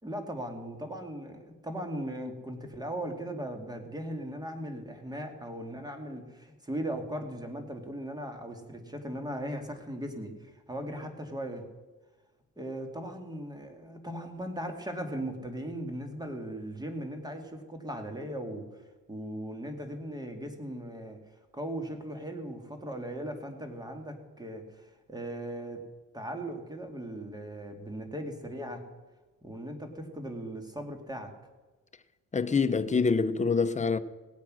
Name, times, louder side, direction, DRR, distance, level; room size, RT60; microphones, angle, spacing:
voice 1, 0.0-11.7 12.6-18.7 19.1-21.2 21.5-25.8 26.1-28.8 29.4-31.3, right 1 dB, 15° right, 2.4 m, -38 dB
voice 2, 32.3-34.0, left 4 dB, 25° left, 0.8 m, -25 dB
18.5 x 8.4 x 6.4 m
cardioid pair, 90°, 30 cm